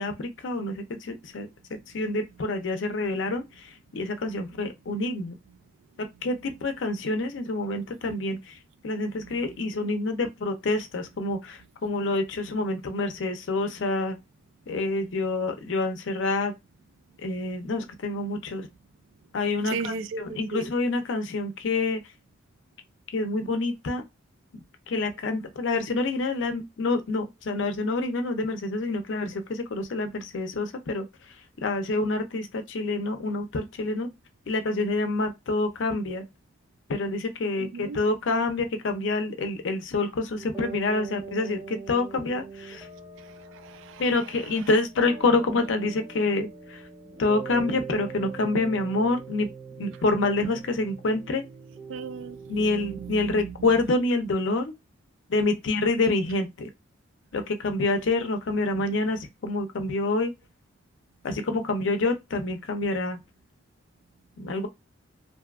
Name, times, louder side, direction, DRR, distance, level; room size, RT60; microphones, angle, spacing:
voice 1, 0.0-1.5 1.9-5.4 6.2-8.6 8.8-14.2 14.7-16.5 17.2-18.7 19.3-22.0 23.1-24.0 24.5-31.0 31.6-34.1 34.5-36.2 36.9-42.9 44.0-46.8 47.2-49.5 49.8-51.4 52.5-54.7 55.3-56.7 57.3-60.3 61.2-63.2 64.4-64.7, left 2 dB, 70° left, 0.5 m, -27 dB
voice 2, 19.6-20.7 37.6-38.0 43.5-44.0 51.9-53.5, right 5 dB, 75° right, 0.3 m, -36 dB
sound 1, 40.3-53.1, right 5 dB, 15° right, 0.6 m, -42 dB
2.6 x 2.2 x 2.3 m
head